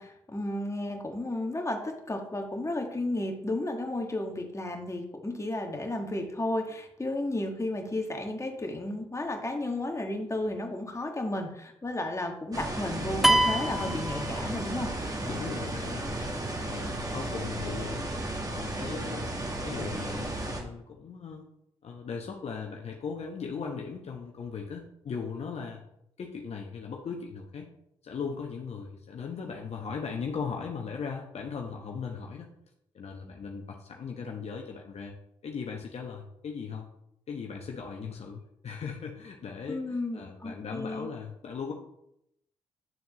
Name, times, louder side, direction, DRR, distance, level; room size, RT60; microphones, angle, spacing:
voice 1, 0.0-14.9 39.7-41.1, left 1 dB, 20° left, 3 dB, 1.7 m, -33 dB
sound 1, 12.5-20.6, right 1 dB, 25° right, 2.0 m, -34 dB
sound 2, 13.2-14.9, right 1 dB, ahead, 0.7 m, -25 dB
voice 2, 15.3-16.2 16.6-18.1 18.5-21.4 21.8-25.8 26.2-27.7 28.0-32.5 32.9-35.1 35.4-36.9 37.3-41.7, left 5 dB, 50° left, 1 dB, 1.1 m, -38 dB
9.4 x 7.0 x 3.1 m, 0.77 s
hypercardioid pair, 40°, 14 cm